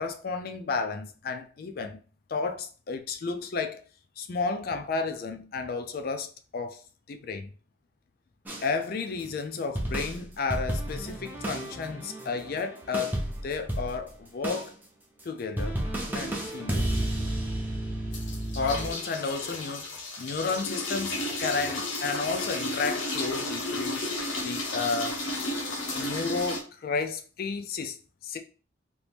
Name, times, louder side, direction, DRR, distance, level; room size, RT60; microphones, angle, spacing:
voice 1, 0.0-2.0 2.3-3.8 4.2-7.5 8.6-14.8 15.2-15.8 16.1-17.0 18.6-19.9 20.2-24.1 24.4-25.2 25.9-28.0 28.2-28.4, left 4 dB, 50° left, 0.4 m, -32 dB
sound 1, 8.4-8.7 9.2-9.3 9.7-14.2 14.4-14.7 15.2-15.3 15.6-18.9, right 1 dB, 10° right, 0.6 m, -32 dB
sound 2, 18.1-26.6, left 2 dB, 80° left, 0.8 m, -33 dB
2.9 x 2.5 x 3.3 m
head